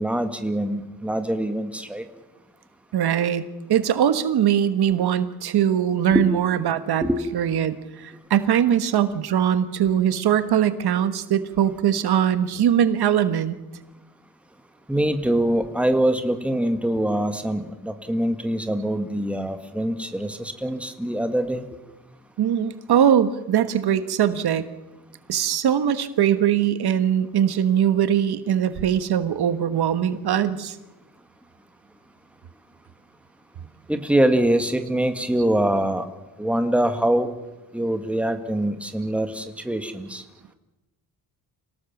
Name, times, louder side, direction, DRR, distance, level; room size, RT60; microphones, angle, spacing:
voice 1, 0.0-2.0 6.1-6.3 7.0-7.2 14.9-21.6 33.9-36.1 36.4-37.3 37.7-40.2, right 1 dB, 5° right, 7 dB, 1.7 m, -24 dB
voice 2, 2.9-3.4 3.7-7.0 7.3-13.5 22.4-24.7 25.3-30.7, right 9 dB, 85° right, 12 dB, 1.4 m, -21 dB
26.5 x 18.0 x 7.2 m, 1.1 s
wide cardioid pair, 125°, 38 cm